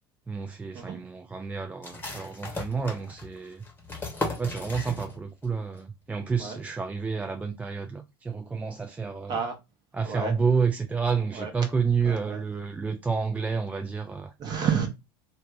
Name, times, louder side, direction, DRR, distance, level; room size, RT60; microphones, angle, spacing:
voice 1, 0.3-3.6 4.4-9.4 9.9-14.3, right 5 dB, 10° right, 0.4 m, -29 dB
sound 1, 1.8-5.5 5.7-5.8 6.3-6.7, left 2 dB, 15° left, 1.1 m, -36 dB
voice 2, 12.0-12.4 14.4-14.9, right 6 dB, 35° right, 1.0 m, -30 dB
2.6 x 2.3 x 3.6 m
figure-of-eight pair, 75°, 13 cm